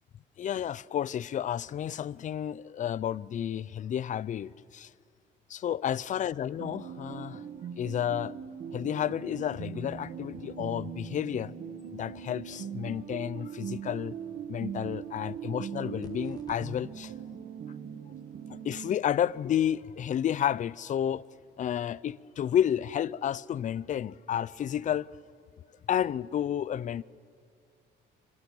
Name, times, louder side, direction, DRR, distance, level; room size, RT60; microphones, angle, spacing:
voice 1, 0.4-4.9 5.5-7.4 7.8-8.4 8.7-11.5 11.9-14.1 14.5-17.1 18.5-21.2 21.6-25.1 25.9-27.0, left 10 dB, 45° left, 0.5 m, -31 dB
sound 1, 6.6-19.0, right 8 dB, 60° right, 1.9 m, -40 dB
sound 2, 16.0-16.8, left 2 dB, 20° left, 2.4 m, -51 dB
25.0 x 24.5 x 7.2 m
cardioid pair, 110°, 19 cm